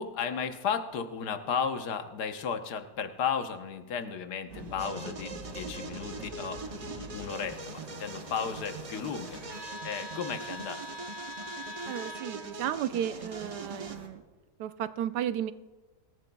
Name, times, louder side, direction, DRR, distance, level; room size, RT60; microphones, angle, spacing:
voice 1, 0.0-6.6 7.0-10.8, left 7 dB, 80° left, 7 dB, 1.5 m, -34 dB
sound 1, 4.5-14.1, equal, 55° right, 2.3 m, -44 dB
sound 2, 4.8-14.0, right 3 dB, 40° right, 0.5 m, -43 dB
voice 2, 11.9-14.2 14.6-15.5, right 10 dB, 80° right, 13 dB, 1.2 m, -33 dB
23.5 x 14.5 x 2.3 m, 1.3 s
omnidirectional pair, 1.7 m